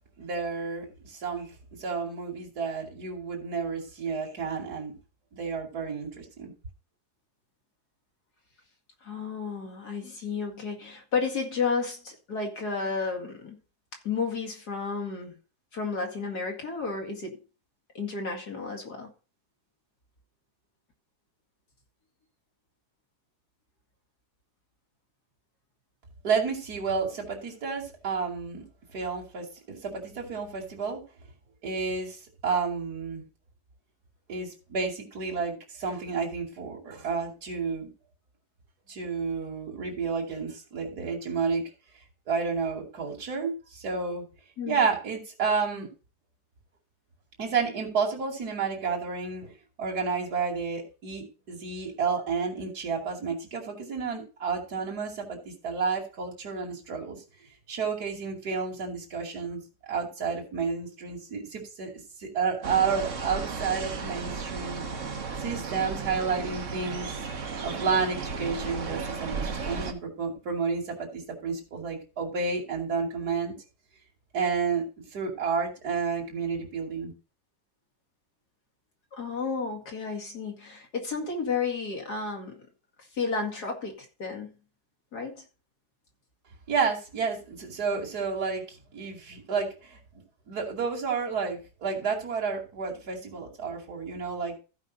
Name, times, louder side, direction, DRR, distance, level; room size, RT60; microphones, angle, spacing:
voice 1, 0.2-1.5 1.8-4.9 5.3-6.5 26.2-28.7 28.9-31.0 31.6-33.2 34.3-37.9 38.9-41.6 42.3-44.2 44.6-45.9 47.4-57.2 57.7-61.9 62.2-64.8 65.4-67.1 67.6-73.5 74.3-77.1 86.7-90.0 90.5-94.5, right 5 dB, 70° right, 3.1 m, -31 dB
voice 2, 9.0-13.6 14.0-15.4 15.7-17.4 17.9-19.1 44.6-44.8 79.1-82.6 83.0-84.5 85.1-85.4, left 5 dB, 75° left, 2.8 m, -32 dB
sound 1, 62.6-69.9, right 5 dB, 50° right, 1.5 m, -34 dB
15.0 x 5.5 x 4.0 m
omnidirectional pair, 1.7 m